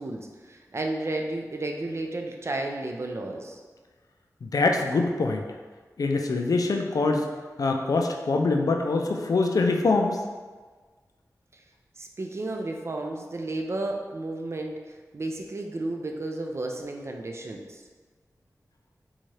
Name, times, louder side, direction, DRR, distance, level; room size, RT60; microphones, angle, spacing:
voice 1, 0.0-3.6 12.0-14.8 15.1-17.8, right 2 dB, 45° right, 2 dB, 0.4 m, -32 dB
voice 2, 4.4-5.5 6.0-7.3 7.6-10.2, left 3 dB, 70° left, 3 dB, 0.4 m, -24 dB
4.0 x 2.3 x 3.2 m, 1.4 s
wide cardioid pair, 70°, 6 cm